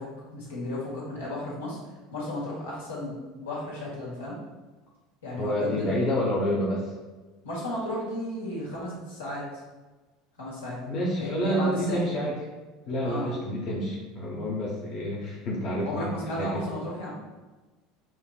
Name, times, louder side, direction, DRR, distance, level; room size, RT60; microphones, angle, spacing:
voice 1, 0.0-1.8 2.1-4.4 5.2-6.0 7.4-9.5 10.4-10.8 11.2-12.0 13.0-13.3 15.8-17.2, left 1 dB, 75° left, -6 dB, 1.4 m, -34 dB
voice 2, 5.4-6.9 10.9-12.3 12.8-16.7, equal, 40° left, -4 dB, 0.9 m, -28 dB
6.1 x 2.9 x 2.4 m, 1.2 s
figure-of-eight pair, 70°, 0 cm